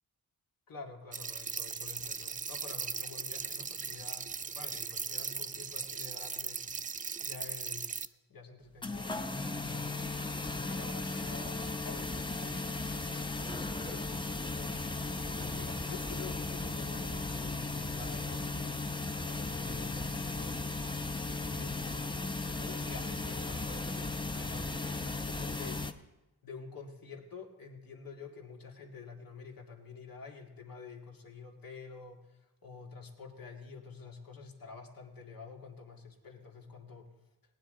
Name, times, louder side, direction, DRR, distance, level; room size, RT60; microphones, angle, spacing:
voice 1, 0.7-6.8 7.2-12.7 13.6-20.6 21.3-22.2 22.5-25.9 26.4-37.1, left 4 dB, 75° left, 1 dB, 2.1 m, -48 dB
sound 1, 1.1-8.1, right 5 dB, 25° right, 0.4 m, -38 dB
sound 2, 8.8-25.9, left 3 dB, 15° left, 0.7 m, -36 dB
18.5 x 9.8 x 3.8 m, 1.0 s
cardioid pair, 90°, 35 cm